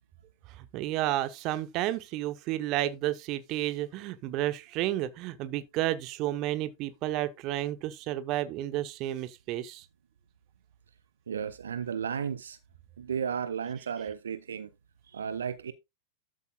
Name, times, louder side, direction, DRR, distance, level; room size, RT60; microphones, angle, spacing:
voice 1, 0.6-9.8, right 14 dB, 40° right, 1.0 m, -31 dB
voice 2, 11.3-12.6 13.0-14.7 15.1-15.7, right 7 dB, 70° right, 0.7 m, -34 dB
13.0 x 7.7 x 2.4 m
figure-of-eight pair, 90°, 0 cm